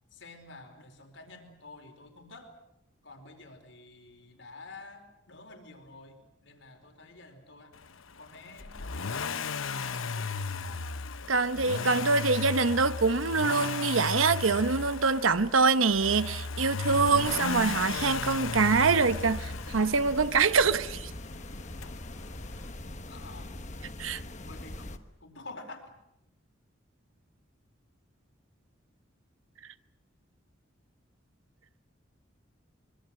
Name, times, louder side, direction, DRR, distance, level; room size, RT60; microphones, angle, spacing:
voice 1, 0.1-2.5 3.0-7.8 8.2-10.4 23.1-23.6 24.4-25.9, left 2 dB, 70° left, 4.7 m, -49 dB
Accelerating revving vroom, 8.6-20.5 21.8-21.9, left 5 dB, 90° left, 1.0 m, -35 dB
voice 2, 11.3-21.1 24.0-24.2, right 4 dB, 90° right, 1.0 m, -25 dB
sound 1, 16.9-25.0, left 1 dB, 35° left, 1.3 m, -42 dB
25.0 x 24.0 x 7.7 m
head